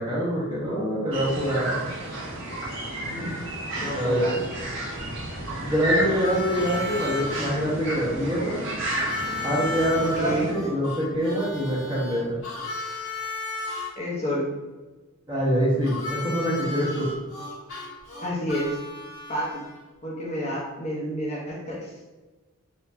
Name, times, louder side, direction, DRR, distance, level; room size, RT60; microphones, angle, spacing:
voice 1, 0.0-1.8 3.9-4.3 5.6-8.6 9.4-12.4 15.3-17.1, equal, 20° right, -6 dB, 1.0 m, -25 dB
sound 1, 1.1-10.5, right 1 dB, 60° right, 0.9 m, -32 dB
voice 2, 3.0-3.4 3.8-4.4 10.0-10.6 14.0-14.5 18.2-18.8 19.3-19.6 20.0-21.9, equal, 30° left, -4 dB, 0.7 m, -30 dB
Harmonica, 6.1-7.5 8.9-13.9 15.8-19.8, left 2 dB, 70° left, 1.3 m, -34 dB
4.4 x 2.6 x 2.6 m, 1.2 s
head